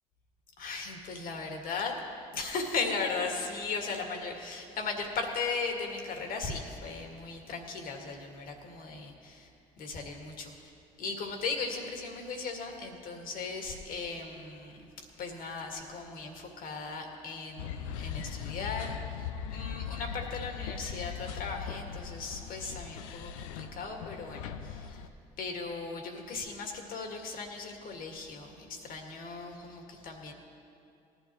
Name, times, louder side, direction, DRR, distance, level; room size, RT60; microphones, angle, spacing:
voice 1, 0.6-2.0 2.3-9.5 9.8-10.6 11.0-25.0 25.4-30.3, left 4 dB, 60° left, 2 dB, 2.0 m, -37 dB
sound 1, 17.6-25.1, left 8 dB, 85° left, 0.5 m, -39 dB
19.0 x 12.0 x 3.1 m, 2.6 s
hypercardioid pair, 65°, 17 cm